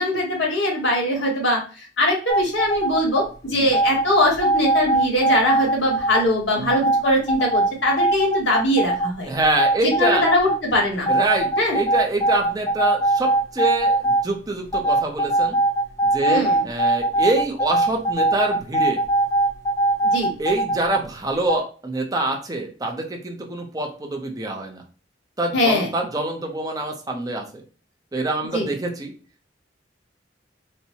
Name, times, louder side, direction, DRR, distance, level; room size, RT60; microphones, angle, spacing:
voice 1, 0.0-9.3 9.8-11.1 11.6-11.8 16.3-16.6 20.0-20.3 25.5-25.9 28.5-28.7, left 1 dB, 80° left, -1 dB, 1.6 m, -21 dB
sound 1, 2.3-3.2 3.7-6.2 6.7-9.1 9.4-10.6 11.1-14.2 14.7-21.0 21.5-21.6, right 2 dB, 15° left, 0.8 m, -20 dB
voice 2, 9.3-10.3 11.1-15.6 16.0-19.0 20.4-24.8 25.4-27.6 28.1-29.1, right 2 dB, 20° right, 2 dB, 0.7 m, -25 dB
4.3 x 2.2 x 2.7 m, 0.37 s
head